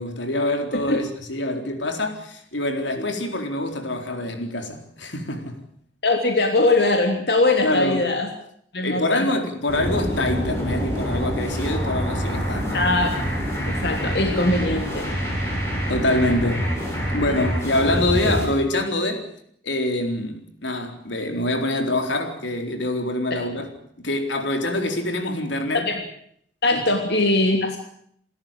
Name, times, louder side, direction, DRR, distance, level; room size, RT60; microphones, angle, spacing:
voice 1, 0.0-5.6 7.6-8.1 8.8-12.8 15.9-16.8 17.1-19.3 19.6-23.7 24.0-25.9 26.7-26.8, left 1 dB, 85° left, 4.1 m, -25 dB
voice 2, 6.0-8.3 8.7-9.3 12.7-13.1 13.7-15.1 18.2-18.3 23.3-23.4 25.7-26.0 26.6-27.8, left 2 dB, 65° left, 3.2 m, -21 dB
sound 1, 9.7-18.5, equal, 15° left, 7.8 m, -26 dB
28.5 x 13.5 x 9.0 m
head